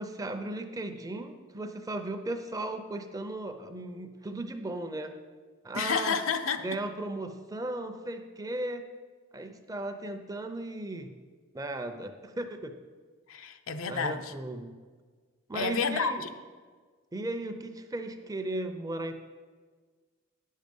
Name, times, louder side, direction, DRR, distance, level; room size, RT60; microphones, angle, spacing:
voice 1, 0.0-5.2 5.6-6.2 6.6-8.9 9.3-11.1 11.5-12.7 13.9-14.7 15.5-16.2 17.1-19.2, right 2 dB, 15° right, 7 dB, 0.6 m, -36 dB
voice 2, 5.7-6.6 13.3-14.3 15.5-16.3, left 5 dB, 80° left, 7 dB, 0.6 m, -30 dB
9.9 x 6.5 x 5.3 m, 1.5 s
head